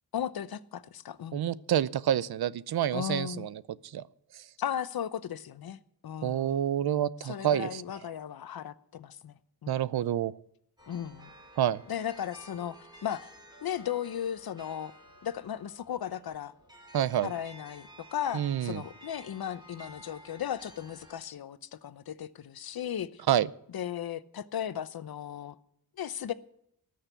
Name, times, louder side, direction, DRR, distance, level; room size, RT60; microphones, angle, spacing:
voice 1, 0.1-1.5 2.9-3.5 4.6-6.7 7.2-9.8 10.9-11.3 11.9-13.3 13.6-14.9 15.2-16.5 17.2-23.2 23.7-25.6 26.0-26.3, left 9 dB, 75° left, 0.8 m, -36 dB
voice 2, 1.3-4.0 4.3-4.4 6.2-7.8 9.7-10.3 11.6-11.8 16.9-17.3 18.3-18.8 23.3-23.5, right 10 dB, 80° right, 0.7 m, -28 dB
sound 1, 10.8-21.2, equal, 10° right, 5.3 m, -53 dB
19.5 x 6.5 x 7.9 m
wide cardioid pair, 110°, 37 cm